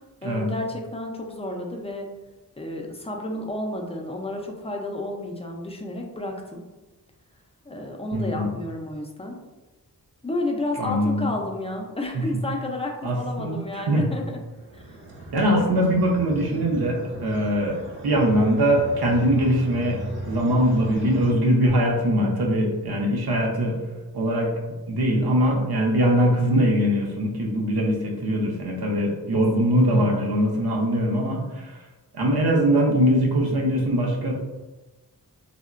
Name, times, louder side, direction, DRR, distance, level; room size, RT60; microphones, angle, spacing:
voice 1, 0.2-2.1 2.6-6.6 7.7-9.4 10.2-14.4 14.7-14.8 29.6-30.1, left 1 dB, 15° left, 1 dB, 0.4 m, -31 dB
voice 2, 8.1-8.5 10.8-11.3 12.1-12.2 13.0-14.1 15.3-17.8 18.0-23.8 24.1-24.5 24.9-31.7 32.1-34.3, equal, 75° right, 0 dB, 0.7 m, -22 dB
sound 1, 14.4-21.3, right 1 dB, 30° right, 0.6 m, -38 dB
3.6 x 2.1 x 2.4 m, 1.1 s
wide cardioid pair, 95°, 38 cm